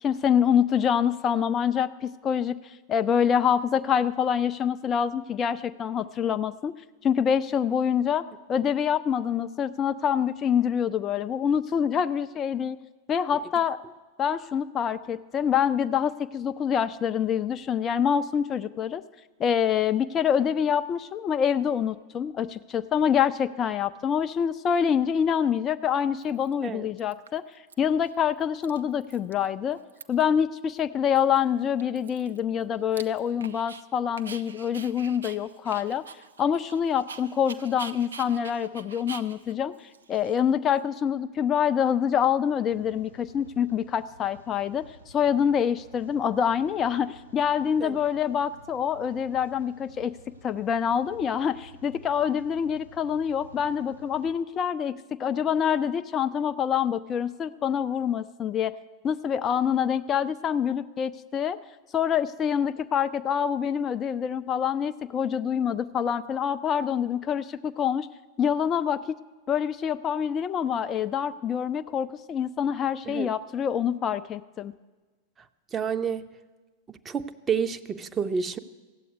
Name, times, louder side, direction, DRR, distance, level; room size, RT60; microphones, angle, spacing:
voice 1, 0.0-6.7 7.0-12.8 13.1-13.8 14.2-19.0 19.4-27.4 27.8-29.8 30.1-36.0 36.4-44.9 45.1-50.2 50.4-58.7 59.0-61.6 61.9-68.1 68.4-69.2 69.5-74.7, left 8 dB, 25° left, 11 dB, 0.4 m, -26 dB
Dog, 25.4-25.5 26.2-26.7 27.0-27.7 28.0-28.1 28.4-29.5 29.7-30.4 30.7-30.8 31.2-33.8 34.2-40.8, right 6 dB, 70° right, 0.6 m, -45 dB
Rain, 42.7-54.3, right 1 dB, 90° right, 1.6 m, -52 dB
voice 2, 75.7-76.3 76.9-78.6, right 6 dB, 20° right, 10 dB, 0.6 m, -29 dB
14.0 x 8.4 x 9.3 m, 1.3 s
figure-of-eight pair, 90°, 0 cm